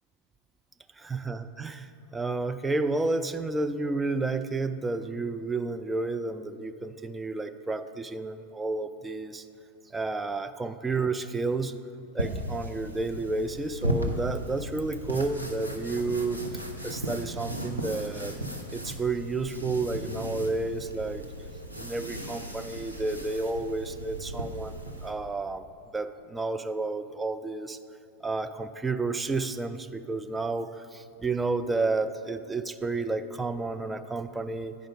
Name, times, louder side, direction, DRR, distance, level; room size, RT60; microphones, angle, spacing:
voice 1, 1.0-9.4 9.9-11.7 12.1-16.4 16.8-18.3 18.7-21.2 21.8-25.6 25.9-27.8 28.2-34.8, right 3 dB, 10° right, 9 dB, 0.3 m, -31 dB
sound 1, 12.2-25.1, equal, 90° right, 0.7 m, -36 dB
9.5 x 5.1 x 5.3 m, 2.9 s
figure-of-eight pair, 90°, 0 cm